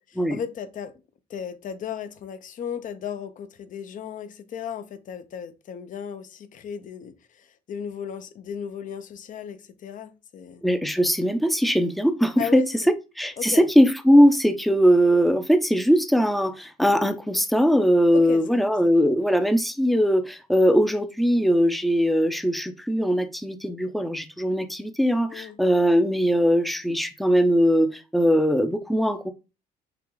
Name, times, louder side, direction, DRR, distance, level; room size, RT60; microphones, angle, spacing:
voice 1, 0.2-0.9 1.3-10.6 12.4-12.9 13.4-13.7 18.1-18.8 25.3-25.6, left 7 dB, 50° left, 0.7 m, -35 dB
voice 2, 10.6-12.6 13.2-29.3, equal, ahead, 0.6 m, -20 dB
5.7 x 2.3 x 3.9 m
cardioid pair, 110°, 17 cm